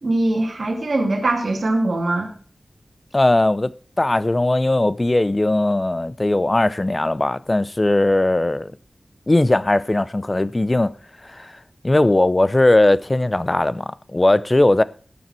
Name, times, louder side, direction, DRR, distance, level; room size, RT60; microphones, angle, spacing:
voice 1, 0.0-2.3, right 2 dB, 65° right, 2.8 m, -21 dB
voice 2, 3.1-8.7 9.3-10.9 11.2-11.5 11.8-14.8, left 2 dB, 30° left, 0.6 m, -18 dB
18.5 x 7.0 x 4.5 m
wide cardioid pair, 90°, 0 cm